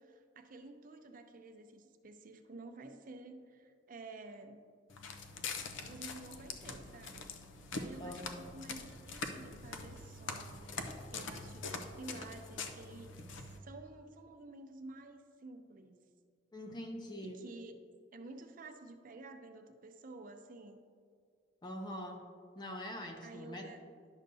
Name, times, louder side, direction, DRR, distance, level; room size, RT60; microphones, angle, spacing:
voice 1, 0.0-4.6 5.6-7.3 7.7-10.6 11.1-16.1 17.2-17.7 18.1-20.8 23.2-23.8, right 2 dB, 45° right, 6 dB, 0.6 m, -51 dB
Walk footsteps, 4.9-13.6, left 4 dB, 85° left, 0.6 m, -44 dB
voice 2, 8.0-8.6 16.5-17.4 21.6-22.2 22.6-23.7, equal, 25° left, 1 dB, 0.6 m, -44 dB
10.5 x 6.5 x 2.7 m, 2.2 s
head